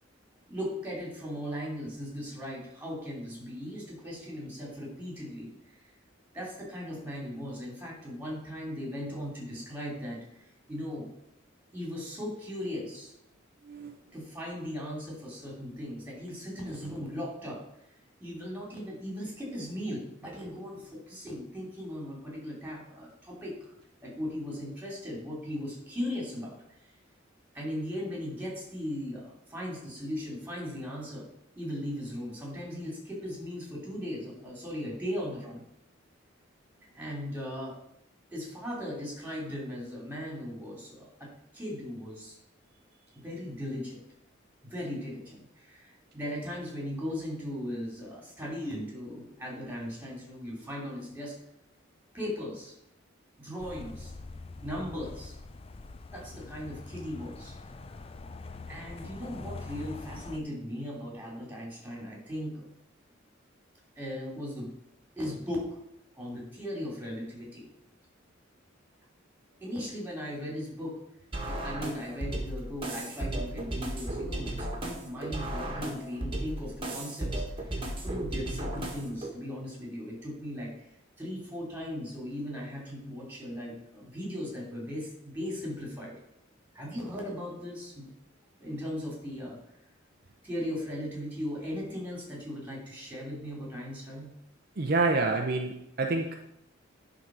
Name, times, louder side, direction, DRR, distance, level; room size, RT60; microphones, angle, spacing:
voice 1, 0.5-5.5 5.8-5.9 6.3-11.1 11.7-13.1 14.1-17.6 18.2-23.7 24.0-26.6 27.5-31.3 31.6-35.6 36.8-37.7 38.3-42.3 43.1-44.0 44.6-51.3 52.1-52.7 53.4-54.1 54.6-55.3 56.1-57.5 58.7-62.6 63.9-64.7 65.2-65.8 66.1-67.7 69.6-71.0 71.4-80.8 81.2-86.2 86.7-88.1 88.6-89.6 90.4-94.3, equal, 10° right, -3 dB, 2.9 m, -38 dB
voice 2, 13.6-13.9 94.8-96.4, right 3 dB, 50° right, 3 dB, 0.7 m, -28 dB
sound 1, 53.6-60.4, left 3 dB, 30° left, 0.4 m, -44 dB
sound 2, 71.3-79.3, right 1 dB, 25° right, 1.6 m, -35 dB
10.5 x 4.0 x 6.1 m, 0.79 s
head